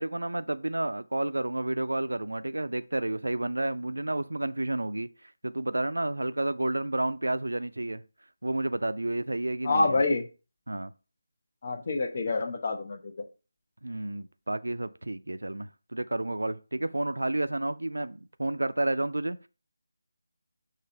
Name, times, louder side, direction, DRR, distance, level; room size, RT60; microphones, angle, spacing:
voice 1, 0.0-8.0 8.4-10.0 10.7-10.9 13.8-19.5, right 1 dB, 75° right, 0.5 m, -31 dB
voice 2, 9.6-10.2 11.6-13.1, left 3 dB, 40° left, 1.0 m, -27 dB
6.6 x 3.3 x 5.5 m
figure-of-eight pair, 160°, 0 cm